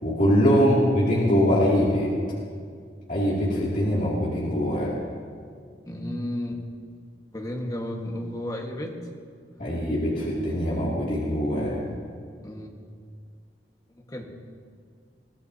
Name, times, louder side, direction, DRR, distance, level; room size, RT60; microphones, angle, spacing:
voice 1, 0.0-2.1 3.1-4.9 9.6-11.8, equal, 45° left, -6 dB, 2.5 m, -22 dB
voice 2, 5.8-6.6 7.3-9.0 12.4-12.7 13.9-14.2, left 1 dB, 20° left, 1 dB, 1.5 m, -33 dB
22.0 x 14.5 x 2.8 m, 2.1 s
head